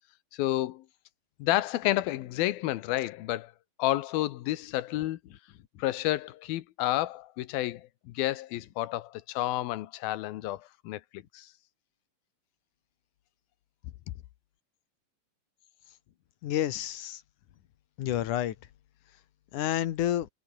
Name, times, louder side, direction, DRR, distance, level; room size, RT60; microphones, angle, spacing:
voice 1, 0.3-0.8 1.4-3.5 3.8-5.2 5.8-11.5, left 15 dB, 85° left, 2.9 m, -30 dB
voice 2, 16.4-17.2 18.0-18.5 19.5-20.3, left 12 dB, 65° left, 2.6 m, -29 dB
omnidirectional pair, 4.1 m